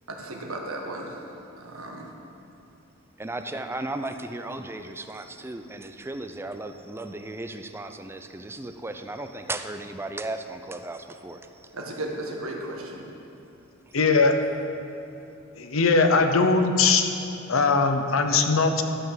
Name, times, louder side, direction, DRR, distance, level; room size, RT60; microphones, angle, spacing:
voice 1, 0.1-1.3 1.6-2.1 11.7-13.1, right 1 dB, 85° right, 1 dB, 1.5 m, -35 dB
voice 2, 3.2-11.4, right 2 dB, 10° right, 7 dB, 0.5 m, -35 dB
voice 3, 13.9-14.4 15.6-17.1 17.5-18.8, left 4 dB, 75° left, 6 dB, 0.8 m, -20 dB
12.5 x 5.8 x 7.3 m, 2.8 s
head